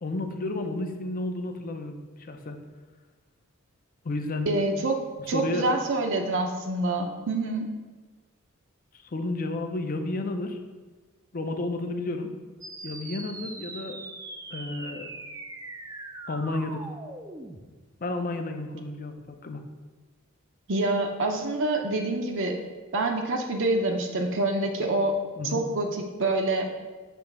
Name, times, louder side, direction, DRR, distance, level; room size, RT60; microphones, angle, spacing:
voice 1, 0.0-2.6 4.0-4.5 5.3-5.7 9.1-10.6 11.3-12.3 12.8-14.0 14.5-15.1 16.3-16.8 18.0-19.6 25.4-25.6, left 2 dB, 40° left, 6 dB, 0.6 m, -31 dB
voice 2, 4.5-5.0 5.3-7.7 20.7-22.6 22.9-25.2 25.5-26.7, right 2 dB, 60° right, 3 dB, 0.7 m, -26 dB
sound 1, 12.6-17.6, right 2 dB, 15° right, 0.4 m, -41 dB
6.9 x 3.2 x 5.9 m, 1.3 s
head